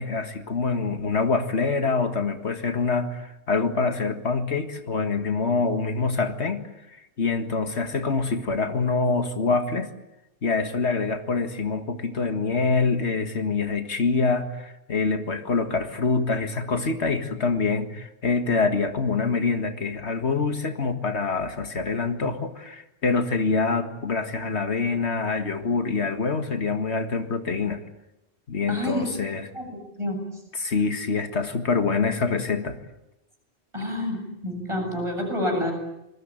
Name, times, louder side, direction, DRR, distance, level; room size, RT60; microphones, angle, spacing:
voice 1, 0.0-9.9 10.4-27.8 28.5-29.5 30.5-32.8, left 4 dB, 75° left, 8 dB, 2.1 m, -25 dB
voice 2, 28.7-29.1 29.5-30.2 33.7-34.2 34.4-35.7, left 1 dB, 25° right, 3 dB, 7.9 m, -28 dB
27.5 x 21.5 x 9.1 m, 0.88 s
omnidirectional pair, 1.1 m